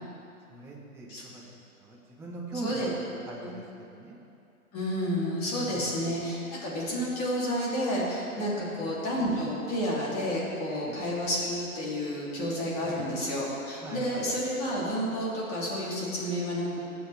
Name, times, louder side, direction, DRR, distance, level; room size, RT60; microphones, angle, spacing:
voice 1, 0.5-1.5 1.8-4.2 5.7-6.0 8.6-8.9 10.7-11.0 12.8-13.1 13.8-14.2, right 3 dB, 5° right, -4 dB, 1.2 m, -41 dB
voice 2, 4.7-16.9, equal, 20° left, -6 dB, 2.9 m, -30 dB
24.0 x 8.5 x 3.5 m, 2.7 s
hypercardioid pair, 150°, 44 cm